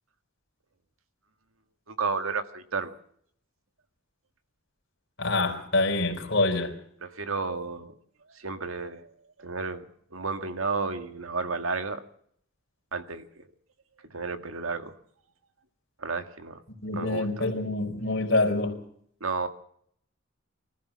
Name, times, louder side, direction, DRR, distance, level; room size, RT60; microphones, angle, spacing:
voice 1, 1.9-3.0 7.0-7.9 8.4-9.1 9.4-9.8 10.1-12.0 12.9-13.4 14.1-14.9 16.0-16.6 16.9-17.5 19.2-19.5, right 4 dB, 85° right, 1.9 m, -32 dB
voice 2, 5.2-6.8 16.8-18.8, left 2 dB, 60° left, 4.3 m, -26 dB
24.0 x 14.5 x 7.5 m
head